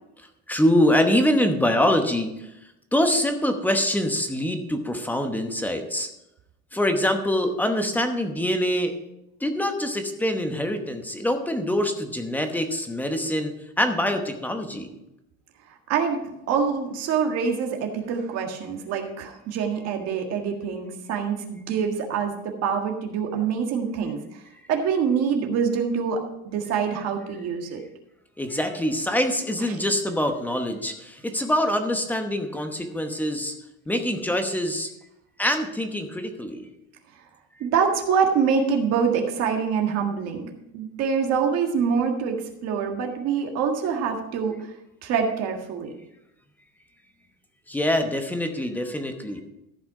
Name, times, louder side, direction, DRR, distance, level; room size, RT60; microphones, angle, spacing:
voice 1, 0.5-2.4 2.9-6.1 6.7-8.9 9.4-14.9 28.4-33.5 33.9-34.9 35.4-36.7 47.7-49.4, left 1 dB, 5° left, 6 dB, 1.0 m, -24 dB
voice 2, 15.9-24.4 24.7-27.8 29.7-29.8 37.6-40.5 40.7-44.7 45.0-45.9, right 6 dB, 50° right, 3 dB, 1.7 m, -25 dB
14.0 x 5.9 x 4.9 m, 0.87 s
cardioid pair, 155°, 32 cm